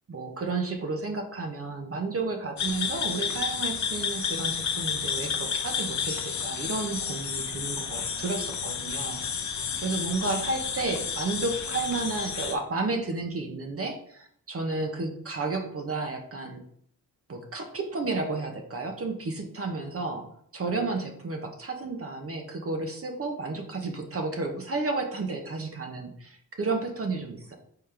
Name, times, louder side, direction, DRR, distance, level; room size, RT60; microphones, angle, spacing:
voice 1, 0.1-9.5 9.8-16.6 17.3-20.3 20.5-27.6, right 3 dB, 35° right, 4 dB, 0.9 m, -32 dB
sound 1, 2.6-12.5, left 6 dB, 50° left, 0.7 m, -31 dB
4.2 x 3.8 x 3.3 m, 0.67 s
supercardioid pair, 55°, 37 cm